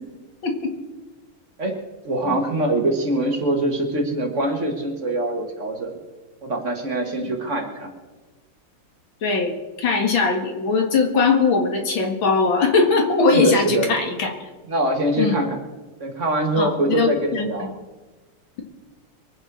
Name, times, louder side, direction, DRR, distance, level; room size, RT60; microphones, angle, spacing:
voice 1, 0.4-0.7 7.2-7.3 9.2-14.4 15.2-15.4 16.6-17.7, left 4 dB, 65° left, 3 dB, 2.6 m, -20 dB
voice 2, 2.0-6.0 6.4-7.9 13.3-13.9 14.7-15.6 16.0-17.7, right 1 dB, 35° right, 3 dB, 1.9 m, -23 dB
23.0 x 7.8 x 6.1 m, 1.2 s
omnidirectional pair, 2.3 m